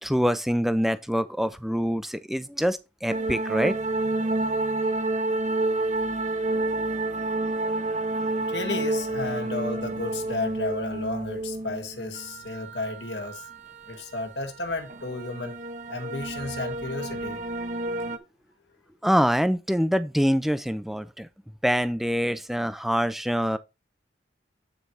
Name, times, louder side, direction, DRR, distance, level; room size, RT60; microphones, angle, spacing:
voice 1, 0.0-3.8 19.0-21.3 21.6-23.6, equal, ahead, 0.5 m, -25 dB
sound 1, 3.1-18.2, right 2 dB, 45° right, 0.8 m, -29 dB
voice 2, 8.5-13.5 13.9-15.5 15.9-17.4, left 3 dB, 75° left, 1.7 m, -33 dB
9.2 x 4.7 x 4.1 m
head